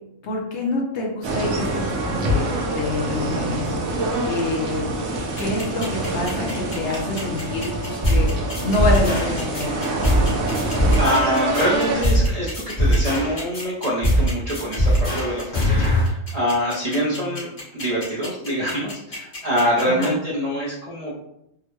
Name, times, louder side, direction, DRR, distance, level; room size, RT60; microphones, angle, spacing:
voice 1, 0.2-3.7 4.2-4.9 5.4-9.7 17.1-17.3 19.8-20.2, left 2 dB, 65° left, -1 dB, 0.9 m, -27 dB
sound 1, 1.2-12.1, right 1 dB, 60° right, 0.9 m, -26 dB
sound 2, 5.4-20.1, left 2 dB, 40° left, 1.5 m, -35 dB
sound 3, 8.0-8.3 8.5-9.6 10.0-10.3 10.5-12.3 12.5-13.6 14.0-14.3 14.5-16.0, equal, 20° left, 1.1 m, -20 dB
voice 2, 10.5-21.1, equal, 45° right, -7 dB, 0.5 m, -25 dB
3.5 x 2.2 x 2.9 m, 0.80 s
omnidirectional pair, 1.4 m